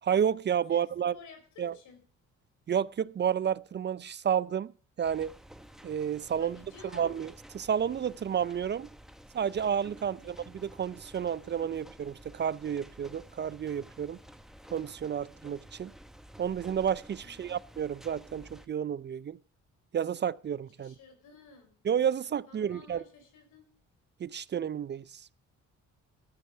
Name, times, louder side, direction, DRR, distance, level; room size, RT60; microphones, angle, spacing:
voice 1, 0.0-1.1 1.6-1.7 2.7-4.7 5.0-5.3 5.8-6.6 6.9-8.9 9.3-14.2 14.7-15.9 16.4-19.4 19.9-20.9 21.8-23.0 24.2-25.3, right 8 dB, 35° right, 0.4 m, -31 dB
voice 2, 0.7-2.0 6.4-7.1 10.0-10.4 17.2-17.6 20.8-21.7 22.5-23.7, left 5 dB, 85° left, 4.7 m, -54 dB
sound 1, 5.0-18.7, equal, ahead, 1.1 m, -52 dB
13.5 x 9.2 x 4.5 m
cardioid pair, 90°, 30 cm